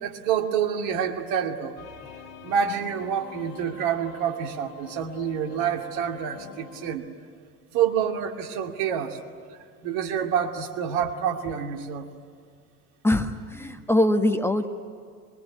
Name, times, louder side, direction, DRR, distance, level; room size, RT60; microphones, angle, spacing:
voice 1, 0.0-1.8 2.4-7.1 7.7-9.2 9.8-12.1, right 8 dB, 60° right, 4 dB, 2.7 m, -27 dB
sound 1, 1.8-7.0, left 8 dB, 65° left, 2.4 m, -45 dB
voice 2, 13.0-14.7, left 1 dB, 5° left, 5 dB, 1.4 m, -22 dB
24.5 x 23.0 x 9.5 m, 2.1 s
figure-of-eight pair, 75°, 46 cm